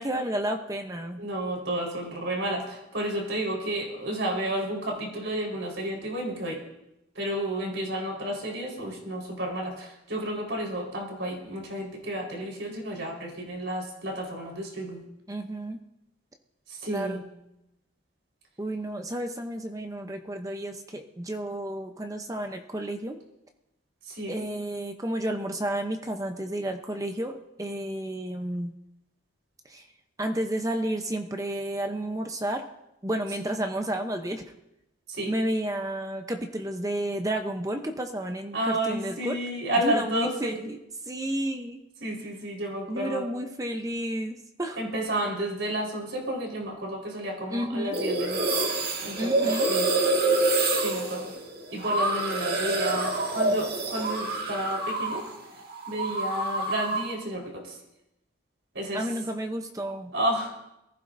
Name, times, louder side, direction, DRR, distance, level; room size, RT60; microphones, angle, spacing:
voice 1, 0.0-1.2 15.3-15.8 16.9-17.2 18.6-23.2 24.3-28.7 29.7-29.8 30.2-32.6 33.0-34.4 35.2-39.4 39.8-40.8 41.1-41.8 42.9-44.8 47.5-48.0 49.2-49.7 58.9-60.1, right 1 dB, 15° right, 5 dB, 0.7 m, -31 dB
voice 2, 1.2-6.6 7.1-15.0 16.7-17.2 24.1-24.4 35.1-35.3 38.5-40.6 42.0-43.2 44.8-48.4 49.0-49.9 50.8-51.3 51.7-55.3 55.9-57.8 58.7-59.1 60.1-60.5, right 1 dB, 70° right, -1 dB, 4.3 m, -31 dB
sound 1, 47.9-55.3 55.6-57.1, right 2 dB, 50° right, 1.9 m, -27 dB
22.0 x 15.0 x 2.6 m, 0.88 s
head